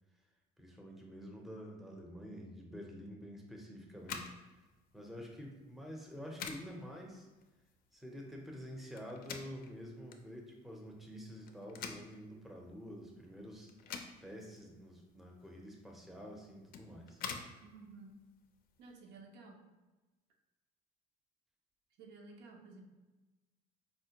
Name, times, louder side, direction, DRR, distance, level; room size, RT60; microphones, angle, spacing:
voice 1, 0.6-4.6 4.9-7.3 7.9-13.7 14.2-17.2, equal, ahead, 0 dB, 0.5 m, -48 dB
sound 1, 3.9-18.9, left 6 dB, 60° left, 0.4 m, -50 dB
voice 2, 17.6-18.2 18.8-19.6 22.0-22.9, right 3 dB, 85° right, 1 dB, 0.6 m, -54 dB
4.2 x 2.2 x 2.8 m, 1.1 s
cardioid pair, 110°, 17 cm